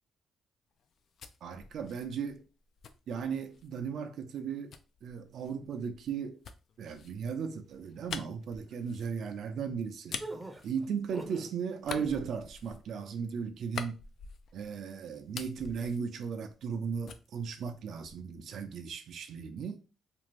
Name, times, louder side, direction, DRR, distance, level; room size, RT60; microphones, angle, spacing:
sound 1, 0.8-3.8 4.7-11.4 11.8-14.8 15.1-16.8 17.1-18.4, left 6 dB, 60° left, 0.3 m, -46 dB
voice 1, 1.4-2.4 3.1-4.7 5.0-6.4 6.8-10.2 10.6-14.0 14.5-19.8, right 6 dB, 70° right, 0.5 m, -36 dB
sound 2, 10.2-11.5 11.9-12.3, right 2 dB, 15° right, 0.6 m, -43 dB
2.6 x 2.4 x 3.1 m
cardioid pair, 90°, 0 cm